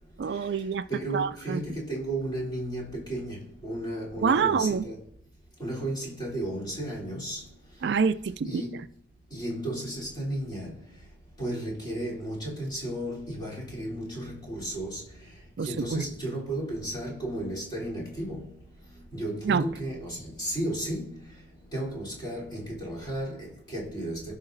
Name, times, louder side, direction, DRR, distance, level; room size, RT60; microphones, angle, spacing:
voice 1, 0.2-0.9 1.1-1.6 4.2-4.9 7.8-8.8 15.6-16.0 19.4-19.7, right 5 dB, 65° right, 0.4 m, -26 dB
voice 2, 0.9-5.0 5.6-7.5 8.5-8.9 9.3-10.7 11.4-15.0 15.6-18.5 19.1-21.2 21.7-24.3, right 1 dB, 25° left, 3.5 m, -34 dB
16.5 x 5.7 x 2.6 m
head